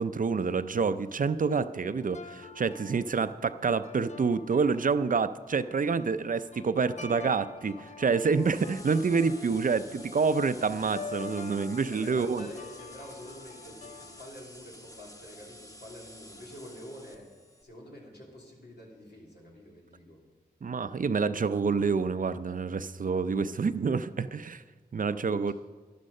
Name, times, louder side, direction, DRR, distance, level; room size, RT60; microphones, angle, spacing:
voice 1, 0.0-7.7 8.0-12.5 20.6-24.6 24.9-25.5, right 5 dB, 55° right, 13 dB, 0.5 m, -27 dB
sound 1, 1.6-14.2, left 5 dB, 45° left, 0.6 m, -47 dB
sound 2, 8.3-17.6, left 1 dB, 20° left, 1.4 m, -50 dB
voice 2, 11.9-17.3 17.6-20.2 25.0-25.5, equal, 80° left, -3 dB, 3.1 m, -47 dB
12.0 x 11.0 x 5.4 m, 1.4 s
cardioid pair, 50°, 17 cm